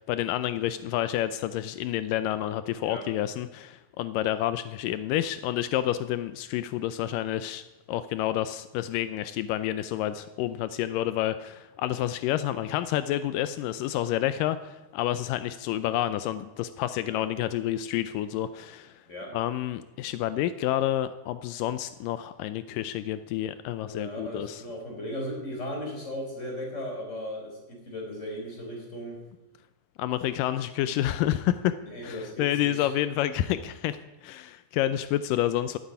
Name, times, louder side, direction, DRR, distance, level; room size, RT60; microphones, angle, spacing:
voice 1, 0.0-19.0 19.3-24.6 30.0-31.7 32.0-35.8, left 13 dB, 90° left, 12 dB, 1.9 m, -29 dB
voice 2, 23.9-29.2 31.8-32.9, equal, 20° left, 1 dB, 4.3 m, -37 dB
13.0 x 10.0 x 9.6 m, 1.0 s
omnidirectional pair, 4.6 m